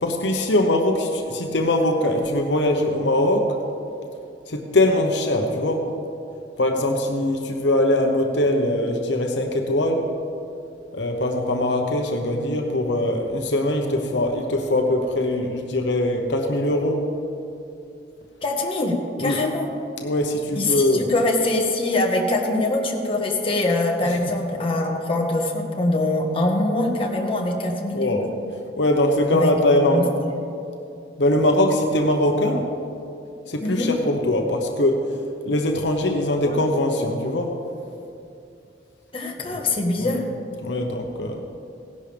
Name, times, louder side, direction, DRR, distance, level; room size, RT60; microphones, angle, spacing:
voice 1, 0.0-3.6 4.5-5.8 6.6-10.1 10.9-17.0 19.2-19.4 20.0-21.1 24.0-24.3 27.9-28.3 28.8-30.1 31.2-32.7 33.5-35.1 35.4-37.6 39.5-39.6 40.0-40.2 40.6-41.4, left 1 dB, 75° left, 3 dB, 1.0 m, -22 dB
voice 2, 18.4-19.7 20.5-28.3 29.3-29.5 29.8-30.1 33.6-33.9 36.4-36.5 39.1-40.2, left 2 dB, 30° left, 0 dB, 1.4 m, -23 dB
17.0 x 11.0 x 3.4 m, 2.6 s
head